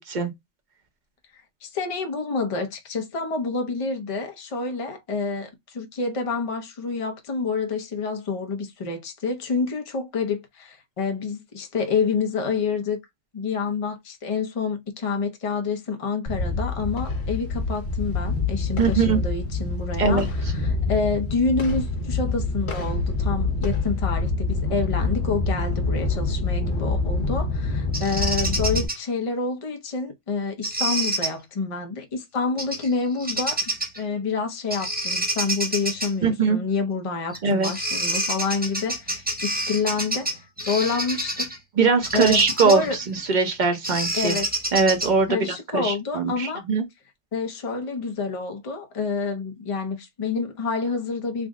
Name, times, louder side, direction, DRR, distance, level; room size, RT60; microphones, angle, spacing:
voice 1, 1.6-13.0 13.3-33.6 34.0-41.5 42.1-43.0 44.2-44.5 45.3-46.6 47.3-51.5, left 4 dB, 35° left, 0.6 m, -28 dB
sound 1, 16.3-28.9, left 3 dB, 65° left, 1.1 m, -26 dB
voice 2, 18.8-19.2 20.0-20.3 36.2-36.6 37.4-37.9 41.8-42.8 43.1-44.3 44.7-45.5 45.7-46.8, right 5 dB, 45° right, 0.9 m, -21 dB
Bird vocalization bird call bird song, 27.9-29.0 30.6-31.3 32.6-32.9 33.2-34.0 34.7-36.1 37.3-37.4 37.6-41.6 42.0-45.3, right 1 dB, 10° right, 0.7 m, -28 dB
3.5 x 2.1 x 3.6 m
omnidirectional pair, 1.2 m